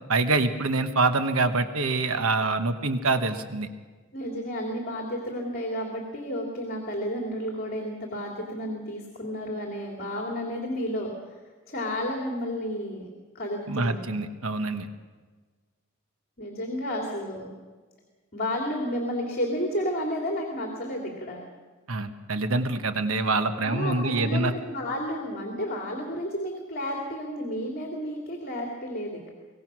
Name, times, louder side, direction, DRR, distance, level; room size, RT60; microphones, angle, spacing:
voice 1, 0.1-3.7 13.7-14.9 21.9-24.5, right 3 dB, 85° right, 9 dB, 1.2 m, -25 dB
voice 2, 4.1-11.4 11.7-13.1 13.3-14.0 16.4-17.5 18.3-21.4 23.6-29.3, equal, 45° left, 1 dB, 2.8 m, -31 dB
23.5 x 18.0 x 6.2 m, 1.4 s
head